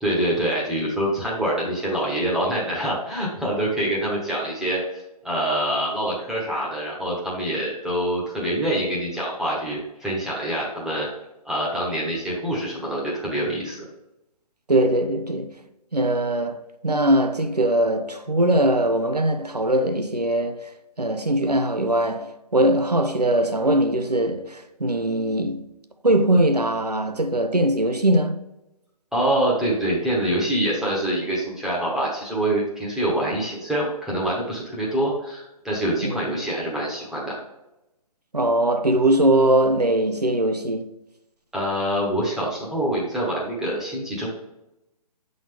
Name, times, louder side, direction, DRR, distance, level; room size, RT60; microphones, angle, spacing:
voice 1, 0.0-4.8 5.2-11.1 11.4-13.8 29.1-37.4 41.5-44.3, right 1 dB, ahead, 1.1 m, -25 dB
voice 2, 14.7-15.5 15.9-20.6 21.0-25.6 26.0-28.3 36.0-36.2 38.3-40.8, right 1 dB, 90° right, 0.8 m, -21 dB
7.0 x 3.9 x 3.4 m
figure-of-eight pair, 135°, 20 cm